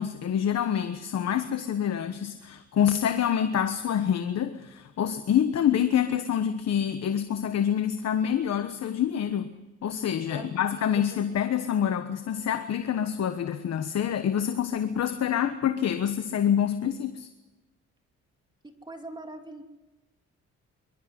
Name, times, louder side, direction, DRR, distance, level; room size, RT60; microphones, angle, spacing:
voice 1, 0.0-9.5 9.8-17.3, left 9 dB, 60° left, 9 dB, 1.3 m, -26 dB
voice 2, 10.3-11.3 18.6-19.6, right 2 dB, 15° right, 4 dB, 2.9 m, -43 dB
23.5 x 13.0 x 9.7 m, 1.1 s
cardioid pair, 90°, 30 cm